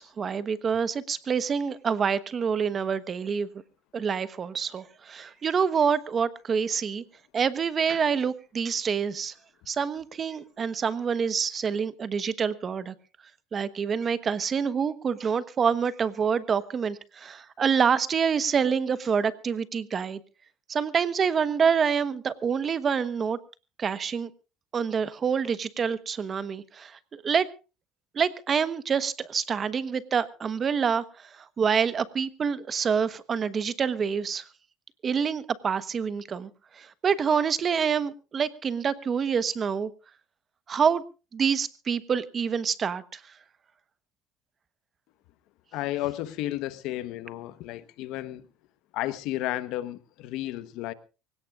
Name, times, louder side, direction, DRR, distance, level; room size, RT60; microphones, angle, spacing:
voice 1, 0.0-3.5 3.9-7.0 7.3-9.3 9.7-12.9 13.5-20.2 20.7-23.4 23.8-24.3 24.7-27.5 28.1-31.0 31.4-34.4 35.0-36.5 36.8-39.9 40.7-41.0 41.3-43.2, right 6 dB, 35° right, 1.1 m, -27 dB
voice 2, 45.7-48.5 48.9-50.9, left 15 dB, 70° left, 1.2 m, -32 dB
24.5 x 17.0 x 2.5 m
supercardioid pair, 105°, 0 cm